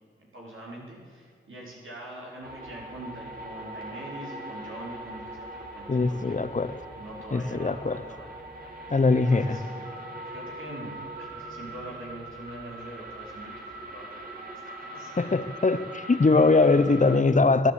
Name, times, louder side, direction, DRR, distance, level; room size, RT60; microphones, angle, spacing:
voice 1, 0.3-6.4 7.0-8.8 9.3-9.8 10.3-15.1, right 1 dB, 75° right, -3 dB, 4.4 m, -43 dB
sound 1, 2.4-17.2, right 1 dB, 45° right, 3.4 m, -41 dB
voice 2, 5.9-6.7 7.3-8.0 8.9-9.6 15.2-17.7, left 3 dB, 40° left, 11 dB, 1.0 m, -22 dB
15.0 x 10.5 x 8.4 m, 2.1 s
cardioid pair, 45°, 21 cm